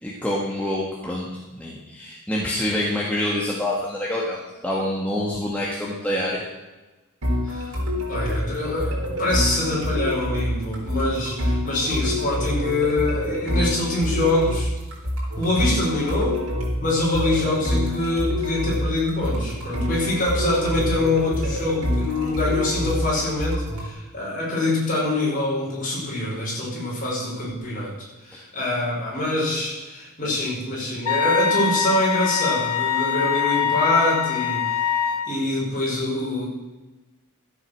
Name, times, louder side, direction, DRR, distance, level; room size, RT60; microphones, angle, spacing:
voice 1, 0.0-6.4, left 1 dB, 5° left, -4 dB, 1.6 m, -26 dB
sound 1, 7.2-23.9, left 1 dB, 85° right, 4.1 m, -26 dB
voice 2, 7.4-7.7 8.1-14.7 15.4-16.4 16.8-27.9 28.2-35.0 35.2-36.5, left 2 dB, 35° left, -5 dB, 5.1 m, -24 dB
Wind instrument woodwind instrument, 31.1-35.3, left 8 dB, 80° left, 1.0 m, -23 dB
13.0 x 8.0 x 6.5 m, 1.2 s
head